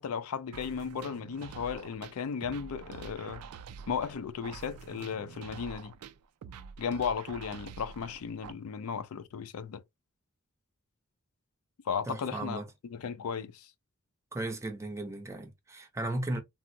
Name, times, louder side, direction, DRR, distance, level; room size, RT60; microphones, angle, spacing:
voice 1, 0.0-3.4 3.9-5.9 6.8-9.8 11.9-12.6 12.9-13.7, left 6 dB, 70° left, 0.4 m, -35 dB
sound 1, 0.5-8.5, right 6 dB, 85° right, 0.4 m, -47 dB
voice 2, 12.1-12.7 14.3-16.4, right 2 dB, 15° right, 0.5 m, -35 dB
3.4 x 2.0 x 2.6 m
head